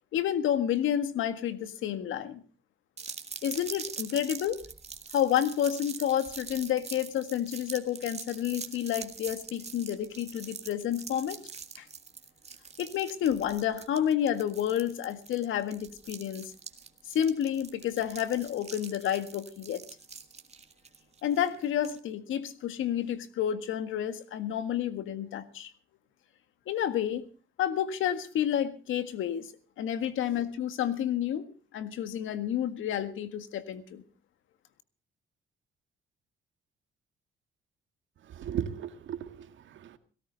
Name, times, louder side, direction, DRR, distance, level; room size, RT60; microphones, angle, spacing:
voice 1, 0.1-2.4 3.4-4.6 5.1-11.4 11.8-11.9 12.8-16.5 17.1-19.8 21.2-25.7 26.7-27.2 27.6-29.5 29.8-31.5 31.7-34.0, left 10 dB, 80° left, 11 dB, 1.8 m, -30 dB
sound 1, 3.0-22.0, right 5 dB, 30° right, 2.0 m, -44 dB
voice 2, 38.2-40.0, right 9 dB, 75° right, 9 dB, 1.9 m, -36 dB
18.0 x 17.0 x 4.0 m, 0.37 s
cardioid pair, 90°, 20 cm